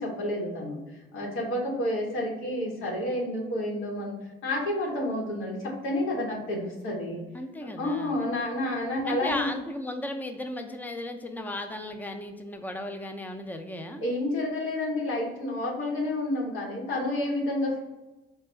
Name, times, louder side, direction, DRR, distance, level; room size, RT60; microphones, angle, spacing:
voice 1, 0.0-4.2 4.4-7.2 7.6-9.5 14.0-17.8, left 1 dB, 90° left, -2 dB, 1.2 m, -30 dB
voice 2, 7.3-8.2 9.0-14.0, left 1 dB, 10° left, 6 dB, 0.4 m, -35 dB
4.0 x 2.2 x 4.3 m, 1.1 s
cardioid pair, 90°, 20 cm